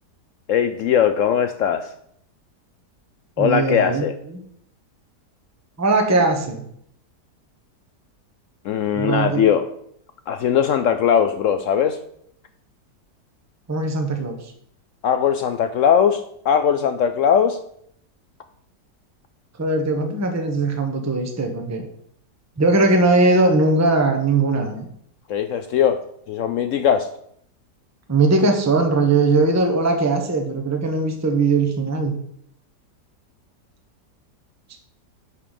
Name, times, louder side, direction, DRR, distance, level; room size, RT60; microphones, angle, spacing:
voice 1, 0.5-1.9 3.4-4.1 8.6-9.7 10.3-12.0 15.0-17.6 25.3-26.0 26.3-27.1, left 8 dB, 75° left, 9 dB, 0.7 m, -19 dB
voice 2, 3.4-4.4 5.8-6.6 8.9-9.4 13.7-14.4 19.6-21.8 22.6-24.9 28.1-32.1 34.7-34.8, right 3 dB, 15° right, 4 dB, 0.8 m, -20 dB
5.6 x 5.5 x 6.7 m, 0.69 s
omnidirectional pair, 1.8 m